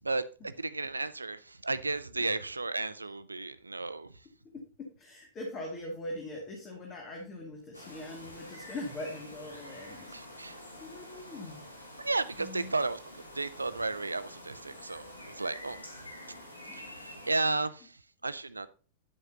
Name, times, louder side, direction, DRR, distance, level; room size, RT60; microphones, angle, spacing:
voice 1, 0.0-4.1 10.1-10.6 12.0-13.0 13.3-15.8 16.7-18.7, right 3 dB, 80° right, 0.5 m, -33 dB
voice 2, 4.4-10.5 10.8-11.6 12.4-12.7 16.7-16.9, left 1 dB, 30° left, 2.3 m, -42 dB
sound 1, 7.7-17.4, left 1 dB, 85° left, 1.8 m, -48 dB
10.5 x 8.0 x 2.9 m
figure-of-eight pair, 90°, 0 cm